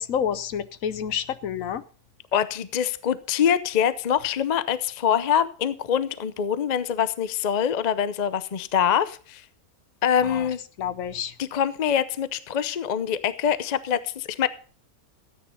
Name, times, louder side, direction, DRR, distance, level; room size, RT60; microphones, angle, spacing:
voice 1, 0.0-1.8 10.2-10.4 10.8-11.3, left 8 dB, 70° left, 1.1 m, -29 dB
voice 2, 2.3-9.4 10.0-10.6 11.4-14.5, left 8 dB, 45° left, 0.6 m, -24 dB
13.0 x 9.3 x 5.4 m
omnidirectional pair, 1.5 m